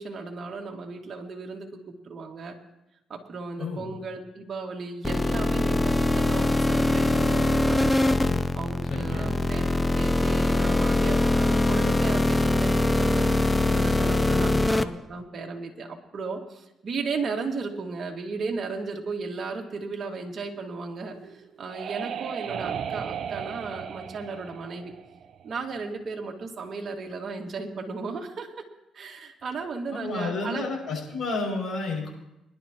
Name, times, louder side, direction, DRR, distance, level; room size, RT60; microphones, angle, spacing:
voice 1, 0.0-2.6 3.1-8.1 8.5-13.3 13.7-24.9 25.4-28.5 28.9-30.6, right 4 dB, 50° right, 0 dB, 2.1 m, -35 dB
voice 2, 3.6-3.9 8.2-8.4 8.8-9.3 14.2-14.8 29.9-32.1, left 3 dB, 50° left, -2 dB, 6.4 m, -32 dB
sound 1, 5.0-14.8, left 2 dB, 15° left, 0.6 m, -23 dB
sound 2, 21.1-25.7, right 8 dB, 65° right, 0.8 m, -35 dB
23.0 x 11.5 x 3.0 m, 0.89 s
cardioid pair, 90°, 0 cm